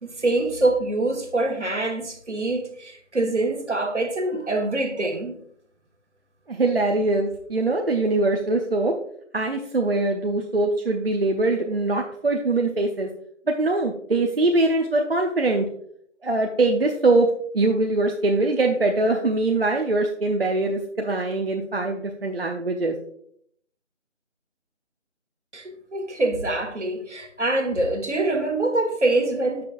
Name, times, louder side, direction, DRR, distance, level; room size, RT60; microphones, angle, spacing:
voice 1, 0.0-5.4 25.5-29.7, right 2 dB, 70° right, 1.5 m, -25 dB
voice 2, 6.5-8.9 9.3-13.1 13.5-15.7 16.2-17.3 17.5-22.9, right 2 dB, 50° right, 0.7 m, -22 dB
9.3 x 6.0 x 2.5 m
figure-of-eight pair, 165°, 37 cm